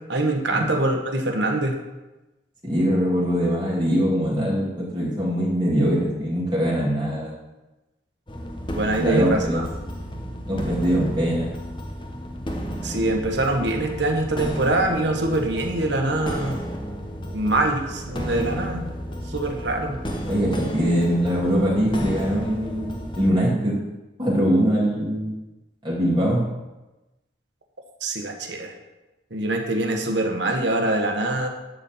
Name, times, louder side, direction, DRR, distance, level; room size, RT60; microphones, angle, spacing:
voice 1, 0.0-1.8 8.7-9.7 12.8-16.6 17.3-18.9 19.3-20.0 28.0-28.7 29.3-31.5, right 2 dB, 75° right, 3 dB, 1.4 m, -24 dB
voice 2, 2.6-7.3 9.0-9.6 10.5-11.5 20.3-23.8 24.2-25.4 25.8-26.4, equal, 25° right, -6 dB, 2.3 m, -22 dB
sound 1, 8.3-23.3, equal, 25° left, 1.1 m, -32 dB
11.5 x 4.3 x 7.2 m, 1.1 s
head